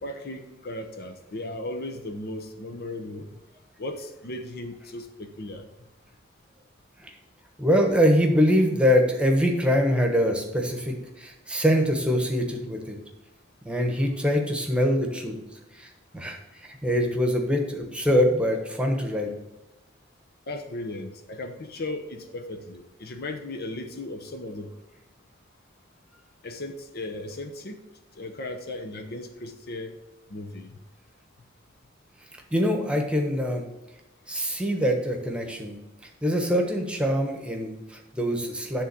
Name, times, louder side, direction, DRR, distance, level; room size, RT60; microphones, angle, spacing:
voice 1, 0.0-3.3 3.8-5.6 20.5-24.7 26.4-27.8 28.2-30.0 30.3-30.8, left 2 dB, 55° left, 7 dB, 0.8 m, -36 dB
voice 2, 7.6-13.0 13.6-15.4 15.7-19.3 32.5-33.6 34.3-35.8 36.2-38.8, equal, 5° right, 2 dB, 1.1 m, -24 dB
10.0 x 3.7 x 6.8 m, 1.0 s
head